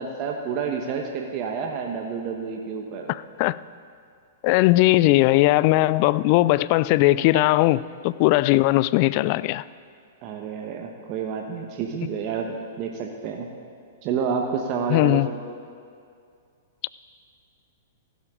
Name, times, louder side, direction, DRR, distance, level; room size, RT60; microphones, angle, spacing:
voice 1, 0.0-3.1 7.3-7.4 10.2-13.5 14.0-15.4, right 6 dB, 40° right, 1.2 m, -29 dB
voice 2, 3.1-3.6 4.4-9.6 14.9-15.3, left 18 dB, 45° left, 0.3 m, -19 dB
15.0 x 12.5 x 3.8 m
hypercardioid pair, 115°, 0 cm